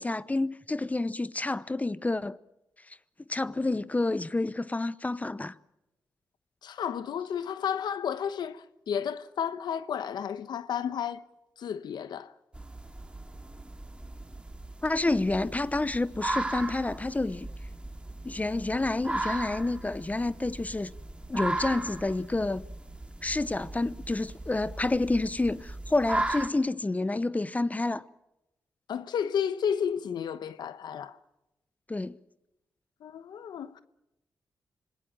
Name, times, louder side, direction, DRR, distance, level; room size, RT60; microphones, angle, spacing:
voice 1, 0.0-2.4 3.3-5.5 14.8-17.5 18.2-20.9 21.3-22.6 23.2-28.0 31.9-32.2, left 2 dB, 20° left, 0.8 m, -29 dB
voice 2, 6.6-11.2 11.6-12.3 28.9-31.2 33.0-33.8, left 8 dB, 80° left, 1.0 m, -32 dB
sound 1, 12.5-26.5, right 2 dB, 15° right, 2.3 m, -37 dB
26.5 x 19.5 x 7.3 m
cardioid pair, 75°, 7 cm